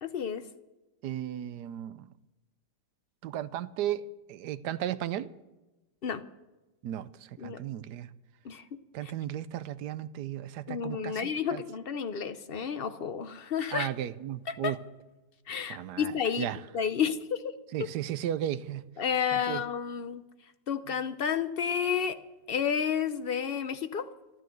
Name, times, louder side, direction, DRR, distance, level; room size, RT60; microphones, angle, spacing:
voice 1, 0.0-0.4 6.0-6.2 7.4-7.6 8.4-8.6 9.0-9.1 10.7-13.9 14.5-14.8 15.5-16.5 16.7-17.5 19.0-20.2 20.7-22.2 22.5-24.1, left 7 dB, 70° left, 0.5 m, -31 dB
voice 2, 1.0-2.1 3.2-4.0 4.3-5.3 6.8-7.1 7.4-8.1 8.9-11.6 13.7-14.8 15.7-16.1 16.4-16.6 17.7-18.9 19.3-19.6, right 11 dB, 70° right, 1.1 m, -35 dB
14.0 x 12.5 x 7.8 m
omnidirectional pair, 2.0 m